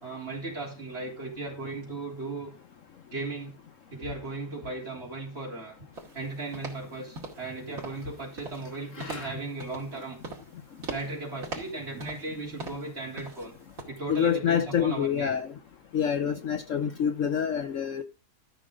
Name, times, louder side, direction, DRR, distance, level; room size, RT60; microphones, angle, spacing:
voice 1, 0.0-2.5 3.1-3.6 3.9-5.8 6.1-10.2 10.9-13.5 13.9-15.3, right 3 dB, 40° right, 3.8 m, -36 dB
sound 1, 5.9-6.2 6.5-6.8 7.1-7.5 7.8-8.1 8.4-8.7 9.0-9.3 9.6-10.0 10.2-10.5 10.8-11.1 11.4-12.3 12.6-12.9 13.2-13.5 13.8-13.9, right 3 dB, 55° right, 2.9 m, -40 dB
voice 2, 9.0-9.3 14.1-15.5 15.9-18.0, left 8 dB, 60° left, 1.0 m, -27 dB
13.0 x 6.5 x 3.8 m
omnidirectional pair, 1.7 m